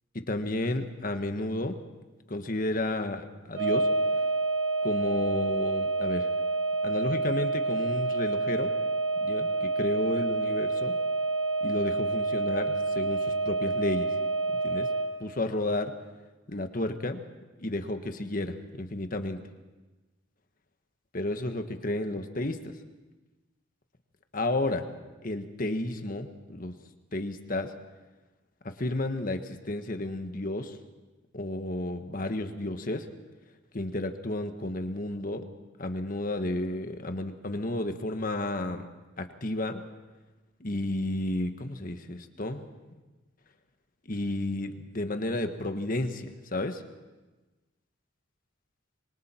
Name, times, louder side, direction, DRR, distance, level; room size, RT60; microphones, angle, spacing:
voice 1, 0.1-1.8 2.3-3.9 4.8-6.3 6.8-8.7 9.2-11.0 11.6-14.1 14.6-14.9 15.2-15.9 16.5-17.2 17.6-19.4 21.1-22.7 24.3-24.9 25.2-26.7 27.1-27.7 28.6-30.8 31.3-33.1 33.7-35.4 35.8-38.9 39.2-39.8 40.6-42.6 44.0-46.8, left 1 dB, 45° left, 7 dB, 1.4 m, -32 dB
sound 1, 3.5-15.1, right 3 dB, 85° right, 5.2 m, -28 dB
26.5 x 23.5 x 4.4 m, 1.2 s
head